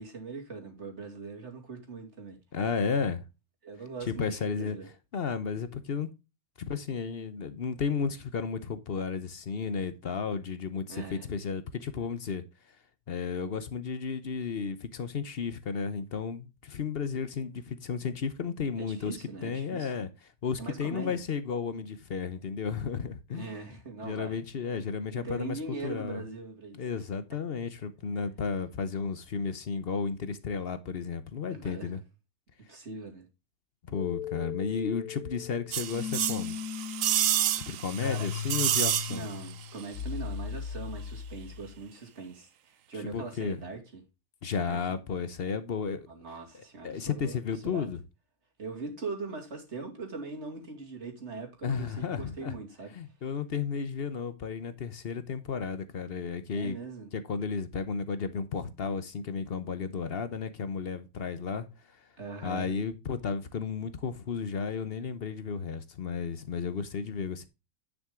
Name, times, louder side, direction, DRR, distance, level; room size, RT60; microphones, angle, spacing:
voice 1, 0.0-2.4 3.6-4.9 10.9-11.3 18.8-19.9 20.6-21.2 23.3-24.4 25.1-26.8 27.5-27.6 31.5-32.0 32.7-33.3 37.6-37.7 38.0-38.3 39.1-44.0 44.6-45.0 46.1-47.4 47.6-47.9 48.6-52.9 56.5-57.1 62.2-62.7, right 4 dB, 50° right, 2.6 m, -41 dB
voice 2, 2.5-3.2 4.1-4.8 5.1-6.1 6.7-12.4 13.1-20.1 20.4-23.5 24.0-26.2 26.8-32.0 33.8-36.6 37.7-39.3 43.0-43.6 44.4-46.1 46.8-48.0 51.6-52.6 52.9-56.8 57.1-61.7 62.4-67.5, left 5 dB, 50° left, 0.9 m, -33 dB
sound 1, 33.9-41.8, left 8 dB, 80° left, 1.1 m, -38 dB
sound 2, 35.7-39.5 39.8-39.9, right 11 dB, 70° right, 1.0 m, -29 dB
10.0 x 6.1 x 3.7 m
omnidirectional pair, 1.5 m